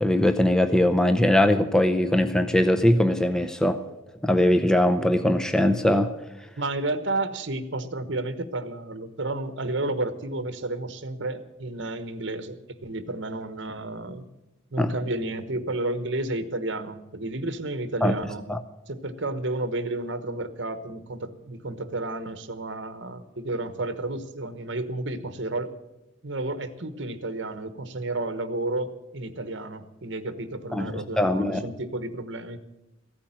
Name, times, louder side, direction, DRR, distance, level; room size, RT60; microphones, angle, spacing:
voice 1, 0.0-3.8 4.2-6.1 14.8-14.9 18.0-18.1 18.5-18.6 30.7-31.6, left 1 dB, 5° left, 8 dB, 0.6 m, -21 dB
voice 2, 6.6-14.3 14.7-18.4 18.9-25.7 26.2-32.6, right 2 dB, 60° right, 11 dB, 1.1 m, -31 dB
15.5 x 8.7 x 8.8 m, 0.97 s
head